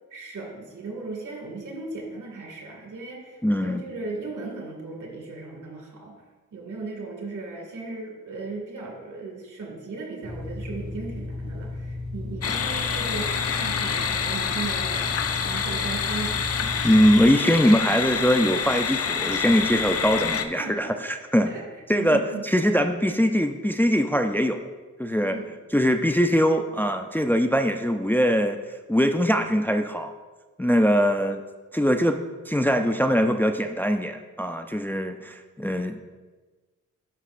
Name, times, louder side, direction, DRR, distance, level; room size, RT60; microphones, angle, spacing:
voice 1, 0.1-6.2 6.5-16.8 20.6-20.9 21.4-22.5 25.2-25.5, right 3 dB, 80° right, -1 dB, 2.0 m, -37 dB
voice 2, 3.4-3.8 16.8-21.5 21.9-24.7 25.0-25.4 25.7-28.6 28.9-30.1 30.6-31.4 31.7-32.2 32.5-36.0, equal, 5° left, 6 dB, 0.4 m, -22 dB
sound 1, 10.2-17.3, left 2 dB, 20° right, 2.1 m, -35 dB
sound 2, 12.4-20.5, left 6 dB, 55° left, 0.5 m, -27 dB
11.5 x 5.9 x 2.5 m, 1.3 s
cardioid pair, 70°, 30 cm